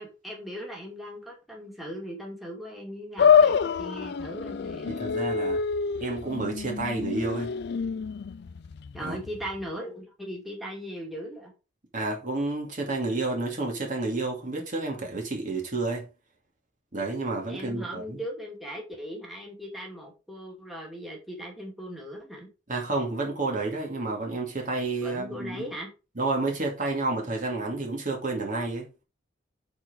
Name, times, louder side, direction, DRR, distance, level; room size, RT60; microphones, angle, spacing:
voice 1, 0.0-5.0 8.9-11.5 17.5-22.5 25.0-25.9, equal, ahead, 2.5 m, -38 dB
sound 1, 3.2-9.6, left 6 dB, 60° left, 0.4 m, -26 dB
voice 2, 4.9-5.6 6.0-7.5 9.0-9.2 11.9-16.1 16.9-18.2 22.7-25.7 26.2-28.9, right 3 dB, 40° right, 2.4 m, -30 dB
8.5 x 4.3 x 5.1 m
head